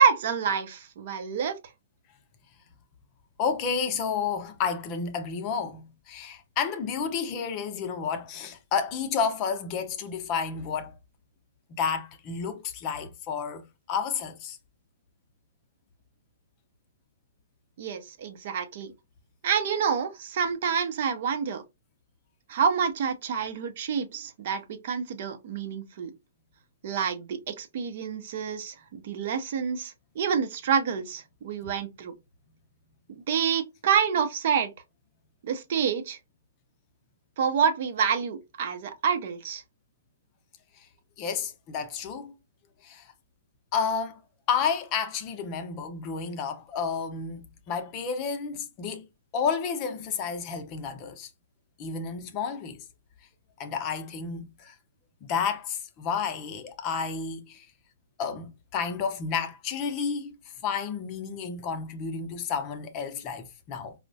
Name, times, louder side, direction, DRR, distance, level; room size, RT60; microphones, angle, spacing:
voice 1, 0.0-1.6 17.8-18.9 19.4-21.6 22.5-26.1 26.8-32.1 33.1-34.7 35.4-36.2 37.4-39.6, right 7 dB, 55° right, 0.5 m, -27 dB
voice 2, 3.4-11.0 11.8-14.6 40.8-40.9 41.2-42.3 42.8-43.1 43.7-44.2 44.5-49.1 49.3-51.3 51.8-52.8 53.6-54.8 55.3-57.7 58.2-60.3 60.6-63.9, left 6 dB, 30° left, 0.6 m, -31 dB
4.4 x 2.1 x 2.6 m
hypercardioid pair, 140°, 0 cm